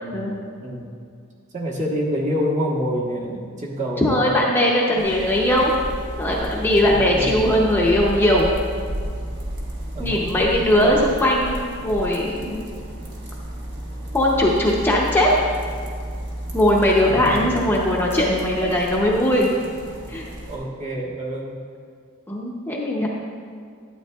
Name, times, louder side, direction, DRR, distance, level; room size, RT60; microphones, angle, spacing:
voice 1, 0.0-0.9 1.5-4.2 4.9-5.0 6.6-7.7 9.9-11.0 12.0-12.8 18.6-18.8 20.5-21.6, equal, 35° right, -3 dB, 1.2 m, -28 dB
voice 2, 4.0-5.7 6.2-8.5 10.0-12.7 14.1-15.3 16.5-19.5 20.1-20.3 22.3-23.1, left 1 dB, 10° left, -3 dB, 0.7 m, -19 dB
sound 1, 5.0-20.6, right 1 dB, 55° right, 1.3 m, -32 dB
12.0 x 8.7 x 2.3 m, 2.2 s
head